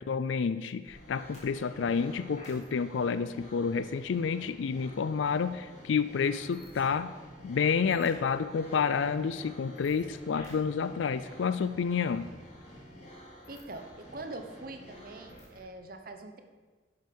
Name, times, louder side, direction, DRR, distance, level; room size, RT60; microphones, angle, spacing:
voice 1, 0.0-7.1 7.4-12.3, left 6 dB, 85° left, 13 dB, 0.4 m, -29 dB
sound 1, 0.9-15.6, equal, 35° left, 2.9 m, -50 dB
voice 2, 13.5-16.4, right 2 dB, 50° right, 6 dB, 1.0 m, -43 dB
11.0 x 8.0 x 5.3 m, 1.4 s
head